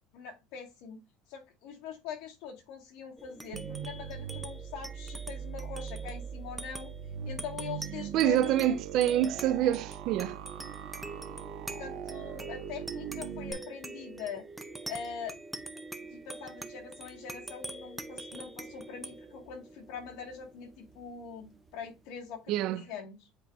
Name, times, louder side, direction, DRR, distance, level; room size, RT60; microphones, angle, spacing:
voice 1, 0.1-1.0 1.3-6.9 7.2-8.8 11.8-14.5 14.9-15.3 16.1-23.3, left 7 dB, 65° left, 2.1 m, -43 dB
sound 1, 3.2-22.0, right 2 dB, 5° right, 0.6 m, -45 dB
sound 2, 3.5-13.5, right 9 dB, 85° right, 1.3 m, -41 dB
voice 2, 8.1-10.4 22.5-22.8, right 12 dB, 55° right, 0.5 m, -26 dB
8.0 x 4.6 x 2.7 m
cardioid pair, 150°, 0 cm